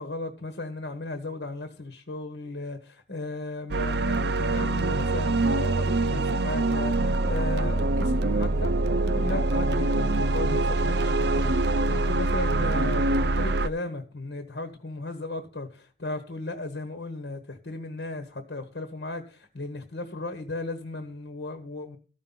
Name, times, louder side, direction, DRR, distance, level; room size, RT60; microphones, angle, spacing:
voice 1, 0.0-22.0, left 2 dB, 75° left, 1.4 m, -36 dB
sound 1, 3.7-13.7, right 2 dB, 65° right, 0.5 m, -24 dB
13.5 x 5.6 x 5.6 m
head